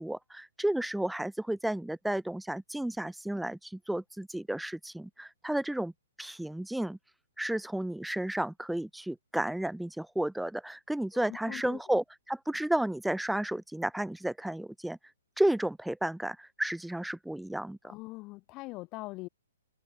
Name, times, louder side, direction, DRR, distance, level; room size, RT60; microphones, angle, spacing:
voice 1, 0.0-5.9 6.2-7.0 7.4-15.0 15.4-17.9, right 1 dB, ahead, 1.9 m, -32 dB
voice 2, 11.1-11.8 17.8-19.3, left 21 dB, 30° left, 2.3 m, -42 dB
hypercardioid pair, 145°, 0 cm